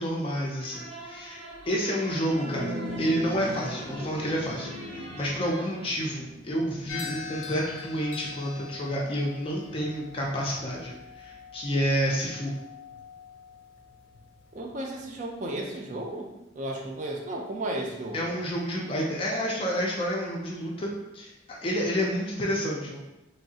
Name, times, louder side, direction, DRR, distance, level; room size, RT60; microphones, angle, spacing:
voice 1, 0.0-12.5 18.1-23.0, equal, 30° left, -2 dB, 0.4 m, -29 dB
sound 1, 0.6-6.0, right 1 dB, 85° right, 1.1 m, -44 dB
sound 2, 2.3-11.9, equal, 60° right, 0.8 m, -40 dB
sound 3, 6.9-15.2, left 6 dB, 90° left, 0.4 m, -44 dB
voice 2, 14.5-16.3 16.6-18.3, right 1 dB, 40° right, 1 dB, 0.4 m, -34 dB
3.2 x 2.7 x 2.7 m, 0.96 s
head